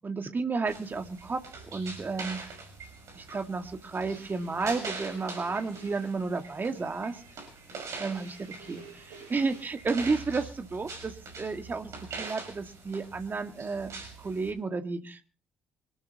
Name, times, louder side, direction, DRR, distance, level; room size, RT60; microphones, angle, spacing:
voice 1, 0.0-1.4 1.7-2.4 3.2-7.2 8.0-11.9 12.2-13.9 14.2-15.2, right 4 dB, 30° right, 6 dB, 2.0 m, -32 dB
sound 1, 0.7-14.5, right 4 dB, 50° right, 5.9 m, -43 dB
sound 2, 4.0-9.6, right 4 dB, 70° right, 7.7 m, -52 dB
25.5 x 13.0 x 3.0 m, 0.37 s
figure-of-eight pair, 45°, 6 cm